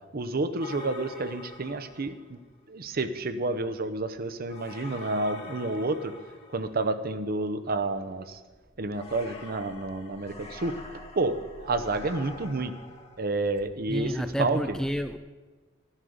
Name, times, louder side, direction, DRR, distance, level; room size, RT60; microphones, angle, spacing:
voice 1, 0.1-2.4 2.7-6.1 6.5-8.4 8.8-12.7 13.2-14.6, right 2 dB, 50° right, 0.8 m, -30 dB
sound 1, 0.6-2.3 4.4-7.0 8.9-13.3, left 3 dB, 30° left, 1.5 m, -45 dB
voice 2, 13.9-15.2, equal, 5° left, 0.3 m, -30 dB
11.5 x 6.7 x 9.4 m
head